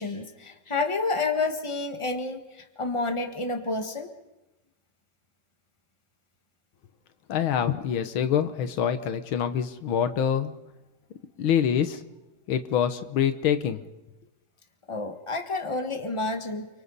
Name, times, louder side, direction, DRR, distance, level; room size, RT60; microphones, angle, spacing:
voice 1, 0.0-4.1 14.9-16.7, left 3 dB, 15° left, 5 dB, 1.6 m, -29 dB
voice 2, 7.3-10.5 11.4-12.0 12.5-13.8, left 8 dB, 90° left, 10 dB, 1.9 m, -25 dB
29.5 x 25.0 x 4.1 m, 1.0 s
omnidirectional pair, 2.2 m